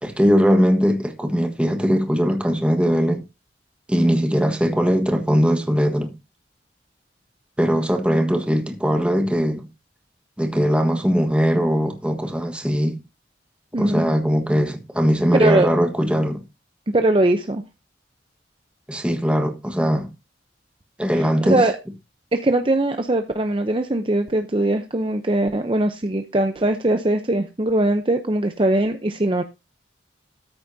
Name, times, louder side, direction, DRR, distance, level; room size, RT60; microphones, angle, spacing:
voice 1, 0.0-3.2 3.9-6.1 7.6-9.7 10.4-13.0 13.8-16.4 18.9-20.1 21.0-21.7, equal, 5° right, 1.5 m, -20 dB
voice 2, 13.7-14.0 15.4-15.7 16.9-17.6 21.1-21.7 22.3-29.4, right 1 dB, 30° right, 0.7 m, -21 dB
13.5 x 8.8 x 2.7 m
head